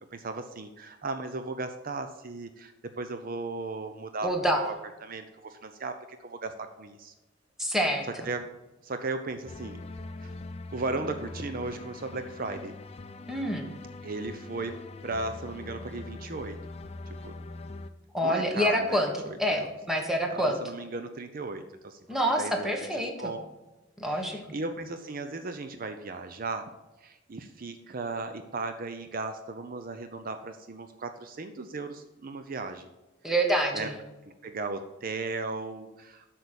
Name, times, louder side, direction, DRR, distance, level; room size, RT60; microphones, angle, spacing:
voice 1, 0.1-4.7 5.0-7.1 8.2-8.6 8.8-9.8 10.2-10.3 10.7-12.7 14.0-16.6 17.2-17.4 18.2-19.7 20.3-22.0 22.4-23.5 24.0-26.7 27.0-32.9 33.7-33.9 34.4-36.2, right 3 dB, 50° right, 8 dB, 0.6 m, -36 dB
voice 2, 4.2-4.6 7.6-8.1 13.3-13.7 18.1-20.6 22.1-23.3 24.0-24.4 33.2-33.9, equal, ahead, 2 dB, 1.3 m, -27 dB
sound 1, 9.4-17.9, left 2 dB, 35° left, 0.5 m, -42 dB
8.0 x 6.0 x 6.8 m, 1.1 s
head